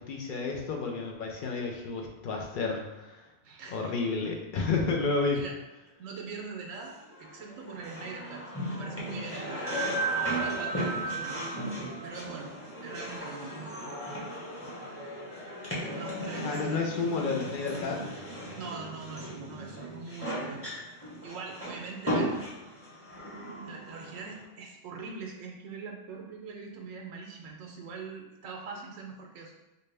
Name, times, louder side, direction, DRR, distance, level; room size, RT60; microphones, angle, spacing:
voice 1, 0.0-3.2 3.7-5.4 16.4-18.0, left 4 dB, 60° left, 1 dB, 0.5 m, -31 dB
voice 2, 3.4-3.9 5.3-5.5 6.0-9.7 10.1-11.7 12.0-12.5 12.8-14.4 15.8-16.8 18.5-20.6 21.2-22.3 23.6-29.5, right 4 dB, 85° right, 1 dB, 0.9 m, -42 dB
sound 1, 6.9-24.4, right 1 dB, 15° left, 0.7 m, -35 dB
4.2 x 2.1 x 3.3 m, 1.0 s
omnidirectional pair, 1.3 m